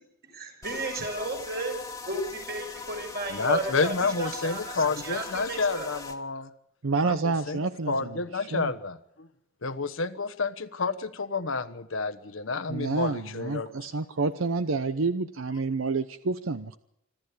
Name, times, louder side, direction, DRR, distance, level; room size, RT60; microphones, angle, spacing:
voice 1, 0.3-1.7 2.0-6.0 12.8-12.9, right 2 dB, 50° right, 2 dB, 6.5 m, -34 dB
sound 1, 0.6-6.2, left 4 dB, 15° left, 1.8 m, -41 dB
voice 2, 3.3-6.5 7.0-7.6 7.9-9.3 9.6-13.7, left 4 dB, 70° left, 13 dB, 1.2 m, -29 dB
voice 3, 6.8-8.7 12.7-16.8, right 3 dB, 75° right, 12 dB, 0.8 m, -29 dB
26.0 x 13.0 x 8.4 m, 0.77 s
head